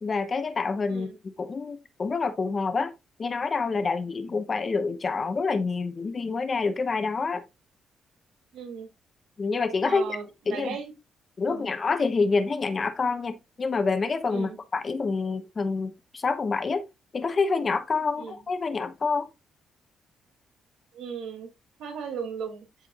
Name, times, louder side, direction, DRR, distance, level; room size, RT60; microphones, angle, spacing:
voice 1, 0.0-2.9 3.2-7.4 9.4-10.2 10.5-10.8 11.4-16.8 17.1-19.3, left 4 dB, 30° left, 0.9 m, -27 dB
voice 2, 8.5-8.9 9.8-10.9 11.5-11.7 14.3-14.6 18.2-18.4 20.9-21.5 21.8-22.7, right 6 dB, 80° right, 2.6 m, -37 dB
13.0 x 4.4 x 2.4 m
cardioid pair, 150°, 0 cm